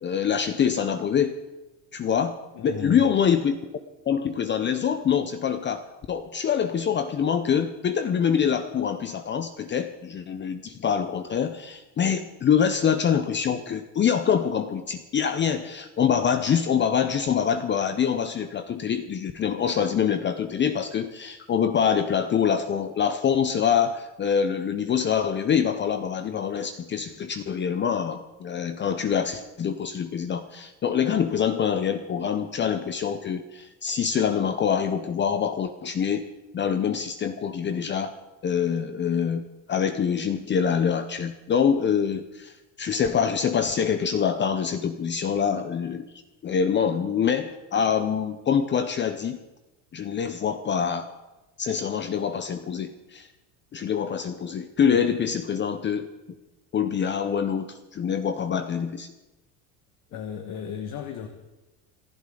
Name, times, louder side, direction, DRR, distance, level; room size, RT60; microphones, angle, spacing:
voice 1, 0.0-1.3 1.9-3.6 4.1-36.2 36.5-38.2 38.4-46.1 46.4-49.4 49.9-51.1 51.6-53.3 53.7-56.1 56.7-59.1, left 7 dB, 30° left, 9 dB, 0.8 m, -25 dB
voice 2, 2.5-3.0 54.9-55.1 60.1-61.3, left 9 dB, 55° left, 6 dB, 1.6 m, -35 dB
27.0 x 11.5 x 3.9 m, 1.0 s
supercardioid pair, 120°, 37 cm